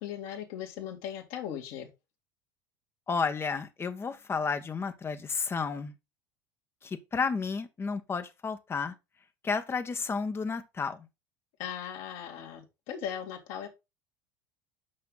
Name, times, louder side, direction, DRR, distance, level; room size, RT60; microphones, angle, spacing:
voice 1, 0.0-1.9 11.6-13.7, left 9 dB, 55° left, 2.1 m, -38 dB
voice 2, 3.1-5.9 6.8-8.9 9.4-11.0, left 5 dB, 20° left, 1.2 m, -32 dB
8.7 x 5.8 x 3.9 m
figure-of-eight pair, 75°, 11 cm